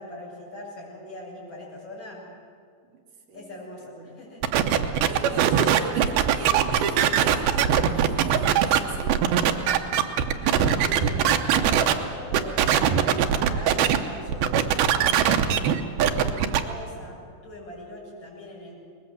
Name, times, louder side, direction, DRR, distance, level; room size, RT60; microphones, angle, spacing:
voice 1, 0.0-2.3 3.3-4.6 10.4-15.5 16.0-18.7, left 1 dB, 30° left, -5 dB, 8.1 m, -41 dB
voice 2, 3.3-3.6 4.0-4.2 5.1-9.2 16.2-16.6, right 5 dB, 60° right, 0 dB, 3.9 m, -39 dB
sound 1, 4.4-11.9 12.3-14.0 14.3-16.6, right 9 dB, 75° right, 2.3 m, -21 dB
22.5 x 20.5 x 7.9 m, 2.2 s
omnidirectional pair, 5.3 m